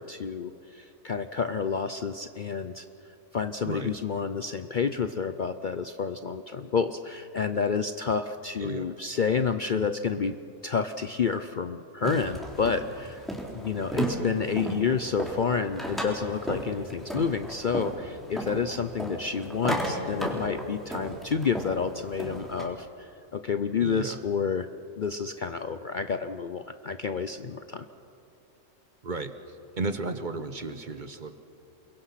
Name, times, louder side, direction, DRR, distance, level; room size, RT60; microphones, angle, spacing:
voice 1, 0.0-2.8 3.3-10.3 10.6-13.3 13.5-24.7 25.0-27.9, left 6 dB, 50° left, 9 dB, 0.6 m, -29 dB
voice 2, 8.6-8.9 23.8-24.2 29.0-29.3 29.8-31.3, right 3 dB, 40° right, 9 dB, 1.1 m, -33 dB
sound 1, 12.0-22.7, right 1 dB, ahead, 3.8 m, -34 dB
29.0 x 22.0 x 5.8 m, 2.7 s
omnidirectional pair, 1.4 m